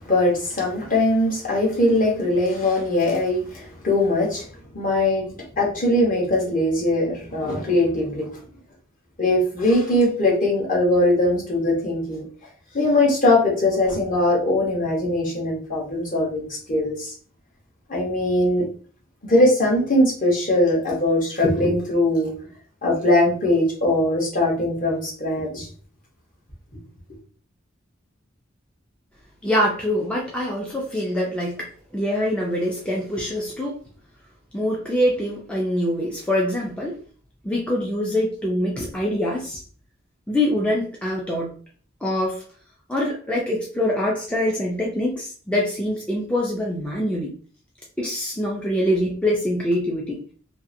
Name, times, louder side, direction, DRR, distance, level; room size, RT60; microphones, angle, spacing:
voice 1, 0.1-4.5 4.7-5.3 5.6-8.3 9.2-12.2 12.7-17.1 17.9-18.6 19.2-22.3 22.8-25.7, left 1 dB, 45° left, -1 dB, 1.0 m, -21 dB
voice 2, 29.4-31.7 31.9-33.7 34.5-37.0 37.4-39.6 40.3-41.5 42.0-42.4 42.9-47.3 48.0-50.2, left 1 dB, 5° left, -3 dB, 0.4 m, -24 dB
2.7 x 2.4 x 2.6 m, 0.43 s
head